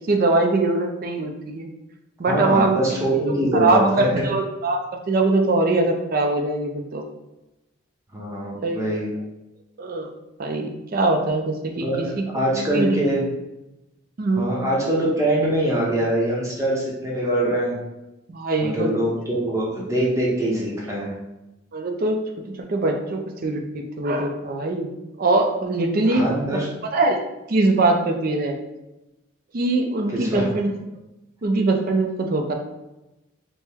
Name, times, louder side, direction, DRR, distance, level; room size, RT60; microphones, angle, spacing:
voice 1, 0.1-1.7 2.2-2.8 3.5-4.8 5.1-7.0 8.6-9.1 9.8-10.1 10.4-11.9 12.2-12.3 12.5-13.0 14.2-14.5 18.3-18.9 21.7-22.2 22.7-24.9 25.2-26.3 26.5-27.2 27.5-28.6 29.5-30.7 31.4-32.5, right 2 dB, 45° right, 3 dB, 0.4 m, -22 dB
voice 2, 2.3-4.1 8.1-9.1 11.8-13.2 14.4-17.8 18.6-21.1 26.1-26.7 30.1-30.4, right 1 dB, 15° right, -4 dB, 0.7 m, -23 dB
4.4 x 2.1 x 3.4 m, 0.97 s
head